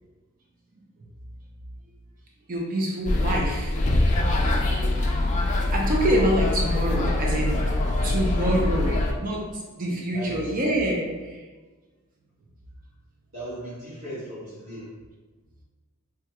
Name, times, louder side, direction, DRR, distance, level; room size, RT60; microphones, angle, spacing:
voice 1, 2.5-3.8 5.7-7.6 7.8-11.4, right 1 dB, 40° right, -2 dB, 0.5 m, -26 dB
sound 1, 3.0-9.1, left 2 dB, 35° left, 0.4 m, -23 dB
voice 2, 8.0-8.8 9.9-10.5 13.3-14.9, right 1 dB, 70° right, -11 dB, 1.5 m, -38 dB
3.5 x 2.9 x 2.2 m, 1.3 s
head